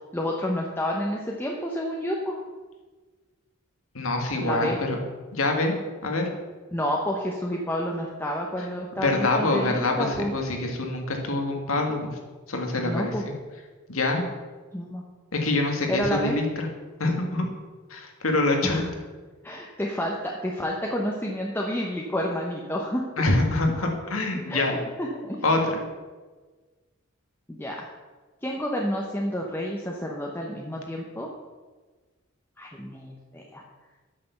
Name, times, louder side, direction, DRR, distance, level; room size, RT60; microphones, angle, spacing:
voice 1, 0.1-2.4 4.4-4.8 6.7-10.3 12.8-13.2 14.7-15.0 15.9-16.4 18.6-18.9 19.4-23.0 24.5-24.7 25.0-25.4 27.5-27.8 28.4-31.3 32.6-33.6, equal, 10° left, -2 dB, 0.9 m, -29 dB
voice 2, 3.9-5.0 5.3-5.8 6.0-6.3 9.0-12.1 12.5-13.3 13.9-14.2 15.3-16.7 17.0-17.5 17.9-18.8 23.2-24.8 25.4-25.8, left 2 dB, 90° left, 2 dB, 1.9 m, -25 dB
8.4 x 6.8 x 6.9 m, 1.3 s
head